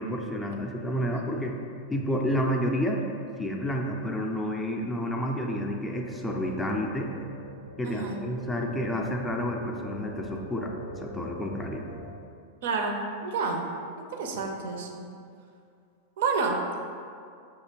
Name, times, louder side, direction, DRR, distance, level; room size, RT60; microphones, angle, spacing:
voice 1, 0.0-1.6 1.9-3.1 3.4-7.1 7.8-10.7 11.0-11.9, equal, 10° left, 1 dB, 0.4 m, -30 dB
sound 1, 5.9-12.1, right 1 dB, 75° left, 0.5 m, -43 dB
voice 2, 7.8-8.2 12.6-13.6 14.0-15.0 16.2-16.6, right 4 dB, 55° right, 2 dB, 0.4 m, -29 dB
5.8 x 2.7 x 2.8 m, 2.3 s
figure-of-eight pair, 90°, 0 cm